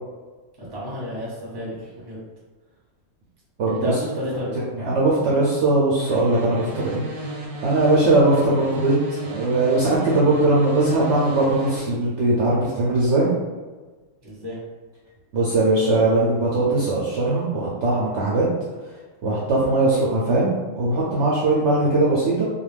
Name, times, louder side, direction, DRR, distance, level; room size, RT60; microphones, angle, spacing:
voice 1, 0.6-2.2 3.7-4.5 14.2-14.6, equal, 20° right, -6 dB, 0.7 m, -31 dB
voice 2, 3.6-4.0 4.7-7.3 7.6-13.3 15.3-18.4 19.2-22.4, right 2 dB, 65° right, -5 dB, 0.7 m, -20 dB
sound 1, 6.0-11.8, left 1 dB, 90° right, 1.2 m, -33 dB
2.4 x 2.2 x 3.2 m, 1.3 s
omnidirectional pair, 1.5 m